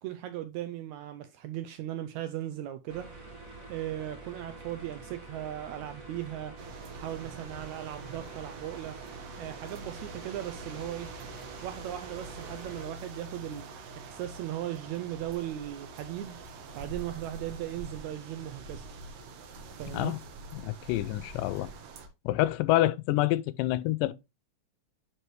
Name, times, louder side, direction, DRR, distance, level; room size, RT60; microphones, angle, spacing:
voice 1, 0.0-3.1 3.7-6.5 6.9-9.0 9.4-11.1 11.6-13.7 14.0-16.4 16.7-18.9 19.7-20.2, right 13 dB, 80° right, 1.7 m, -37 dB
sound 1, 2.9-12.8, right 3 dB, 35° right, 1.4 m, -47 dB
sound 2, 6.6-22.1, right 3 dB, 65° right, 1.8 m, -45 dB
voice 2, 20.5-21.7 22.3-24.1, left 15 dB, 85° left, 2.2 m, -27 dB
9.2 x 4.6 x 3.1 m
omnidirectional pair, 3.8 m